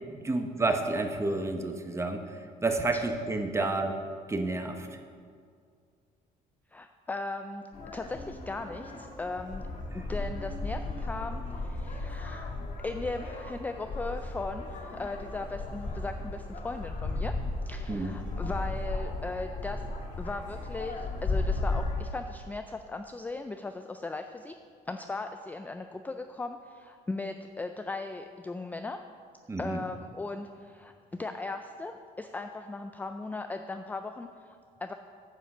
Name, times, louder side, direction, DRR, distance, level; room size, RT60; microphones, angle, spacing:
voice 1, 0.1-2.2 2.6-3.9 4.3-4.9 17.9-18.2 29.5-29.8, right 2 dB, 15° right, 6 dB, 0.9 m, -30 dB
voice 2, 6.7-7.7 7.9-9.7 9.9-12.5 12.8-17.3 17.7-19.8 20.2-24.5 24.9-29.0 29.6-34.3 34.8-34.9, left 3 dB, 10° left, 7 dB, 0.3 m, -38 dB
sound 1, 7.7-22.0, left 2 dB, 50° left, 1.5 m, -35 dB
9.7 x 5.6 x 6.0 m, 2.1 s
cardioid pair, 110°, 17 cm